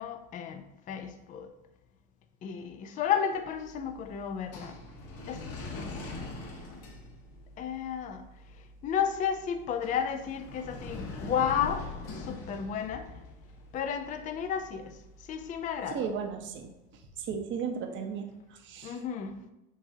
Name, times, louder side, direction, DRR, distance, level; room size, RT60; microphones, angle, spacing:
voice 1, 0.0-1.5 2.4-4.8 5.3-5.4 7.6-8.3 8.8-11.9 12.1-13.1 13.7-15.0 15.3-16.1 18.8-19.4, left 8 dB, 25° left, 7 dB, 0.4 m, -32 dB
sound 1, 3.4-16.5, left 3 dB, 60° left, 1.3 m, -44 dB
voice 2, 15.9-16.7 17.2-18.3 18.6-19.0, right 6 dB, 40° right, 5 dB, 0.8 m, -34 dB
7.3 x 2.7 x 2.7 m, 0.97 s
supercardioid pair, 100°, 29 cm